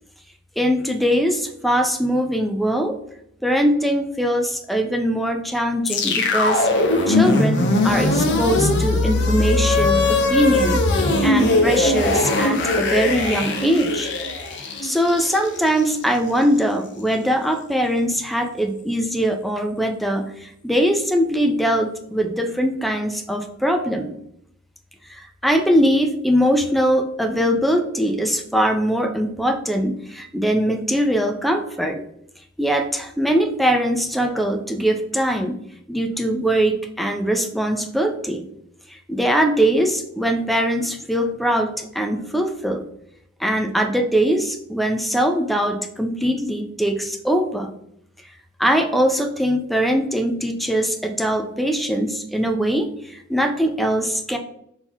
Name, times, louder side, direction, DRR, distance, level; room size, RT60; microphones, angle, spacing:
voice 1, 0.6-3.0 3.4-6.7 7.1-10.8 11.2-14.1 14.8-24.2 25.1-32.0 32.6-35.6 35.9-38.5 38.9-42.8 43.4-47.7 48.6-54.4, equal, ahead, 5 dB, 0.3 m, -21 dB
sound 1, 5.8-16.0, left 2 dB, 55° left, 0.6 m, -20 dB
4.4 x 2.7 x 3.8 m, 0.74 s
head